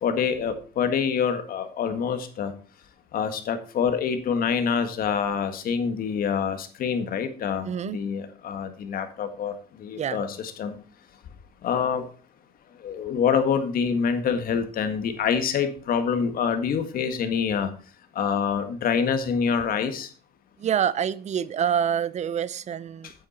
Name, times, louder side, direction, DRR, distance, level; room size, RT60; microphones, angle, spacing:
voice 1, 0.0-2.5 3.1-9.5 9.8-10.8 11.6-12.1 12.8-17.7 18.2-20.1, left 6 dB, 60° left, 8 dB, 1.7 m, -26 dB
voice 2, 7.6-8.0 9.9-10.2 20.6-23.1, right 8 dB, 40° right, 18 dB, 0.6 m, -26 dB
8.9 x 8.3 x 4.3 m, 0.38 s
cardioid pair, 110°, 17 cm